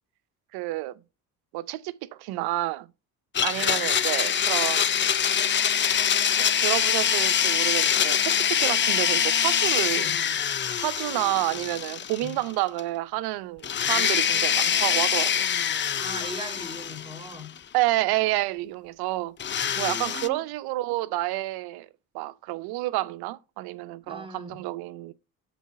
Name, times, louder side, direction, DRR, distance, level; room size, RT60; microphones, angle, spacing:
voice 1, 0.5-1.0 1.5-2.9 3.4-4.9 6.4-10.1 10.7-15.5 17.7-19.4 19.8-21.9 22.1-25.1, right 17 dB, 85° right, 0.7 m, -29 dB
Domestic sounds home sounds, 3.3-12.5 12.8-12.9 13.6-17.6 19.4-20.3, left 8 dB, 30° left, 0.5 m, -24 dB
voice 2, 9.9-10.2 12.2-12.4 16.0-17.6 19.6-20.4 24.1-24.6, equal, 15° right, 2.7 m, -40 dB
7.1 x 4.0 x 5.6 m
cardioid pair, 85°, 37 cm